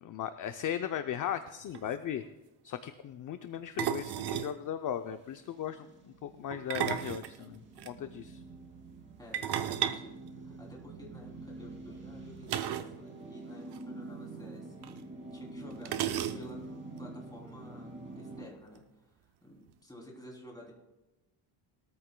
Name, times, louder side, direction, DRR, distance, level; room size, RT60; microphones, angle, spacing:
voice 1, 0.0-2.2 2.6-8.4, left 10 dB, 40° left, 9 dB, 0.5 m, -37 dB
sound 1, 1.5-1.6 1.7-2.0 3.8-4.6 6.5-7.9 9.3-11.0 12.5-13.0 13.2-13.3 13.7-13.8 14.8-14.9 15.9-16.7, right 10 dB, 50° right, 0.7 m, -34 dB
sound 2, 5.2-18.5, right 2 dB, 25° right, 2.4 m, -47 dB
voice 2, 9.2-15.0 15.3-15.9 16.3-16.6 17.0-19.1 19.4-20.7, left 1 dB, 10° left, -2 dB, 3.1 m, -52 dB
21.5 x 14.0 x 2.2 m, 1.0 s
cardioid pair, 145°, 50 cm